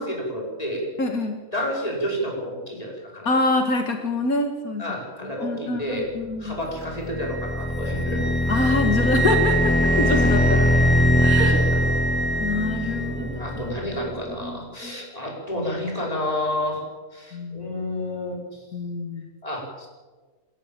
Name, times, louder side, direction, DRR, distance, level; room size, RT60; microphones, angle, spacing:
voice 1, 0.0-0.9 1.5-3.3 4.8-6.1 6.4-8.2 11.4-11.8 12.3-12.4 12.9-16.8 17.1-18.6 19.4-19.9, left 1 dB, 25° left, -2 dB, 5.8 m, -30 dB
voice 2, 1.0-1.4 3.3-4.8 5.2-6.6 8.5-10.7 11.2-11.6 12.4-13.4 13.9-14.1 14.4-15.0 17.3-17.7 18.7-19.3, left 2 dB, 80° left, 5 dB, 2.2 m, -26 dB
sound 1, 6.5-14.3, left 1 dB, 10° left, 0.5 m, -22 dB
Wind instrument woodwind instrument, 7.2-13.2, right 2 dB, 30° right, 2.0 m, -27 dB
29.0 x 13.5 x 7.5 m, 1.4 s
omnidirectional pair, 1.5 m